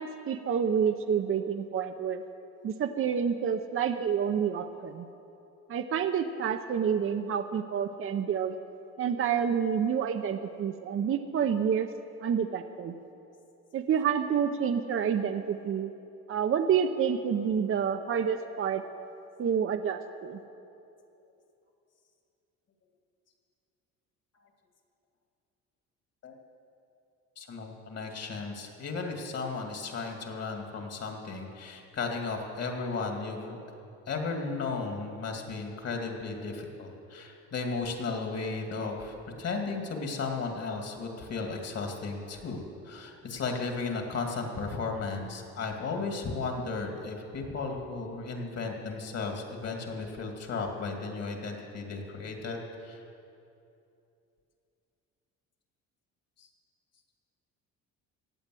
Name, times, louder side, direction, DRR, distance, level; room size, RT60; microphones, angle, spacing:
voice 1, 0.0-2.2 2.6-5.1 5.7-8.5 9.0-11.9 12.2-12.9 13.7-15.9 16.3-18.8 19.4-20.4, right 7 dB, 40° right, 7 dB, 0.7 m, -28 dB
voice 2, 27.4-33.6 34.1-53.0 56.4-56.5, left 4 dB, 50° left, 2 dB, 2.4 m, -35 dB
16.0 x 8.6 x 7.8 m, 2.8 s
cardioid pair, 95°, 33 cm